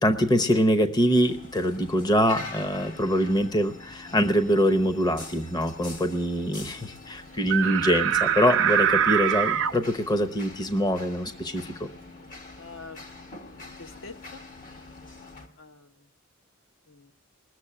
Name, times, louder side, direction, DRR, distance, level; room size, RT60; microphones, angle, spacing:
voice 1, 0.0-11.9, equal, 20° left, 8 dB, 0.7 m, -24 dB
sound 1, 1.2-15.5, left 3 dB, 40° left, 1.6 m, -45 dB
sound 2, 7.5-9.7, right 9 dB, 65° right, 0.6 m, -23 dB
voice 2, 12.6-13.0 13.8-14.4 15.6-16.1 16.9-17.1, left 4 dB, 65° left, 8 dB, 0.9 m, -45 dB
20.5 x 7.1 x 9.9 m, 0.69 s
head